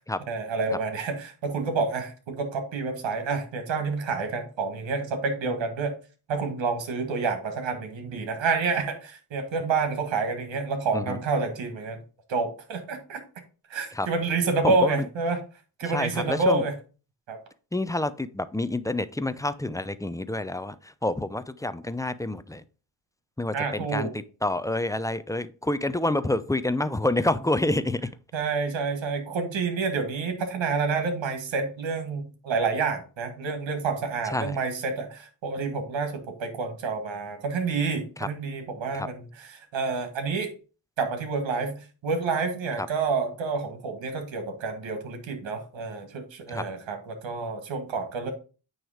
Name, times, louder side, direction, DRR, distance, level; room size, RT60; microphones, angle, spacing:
voice 1, 0.3-6.0 6.3-12.0 12.3-13.2 13.7-15.4 15.8-16.7 17.3-17.4 23.5-24.1 28.3-40.5 41.0-48.3, right 4 dB, 75° right, 7 dB, 1.8 m, -28 dB
voice 2, 14.6-15.1 15.9-16.6 17.7-22.6 23.4-24.1 24.4-28.1 34.3-34.6 38.2-38.3 38.9-39.1 42.8-42.9 46.5-46.6, left 2 dB, 10° left, 14 dB, 0.5 m, -28 dB
9.1 x 3.2 x 5.0 m, 0.36 s
cardioid pair, 60°, 45 cm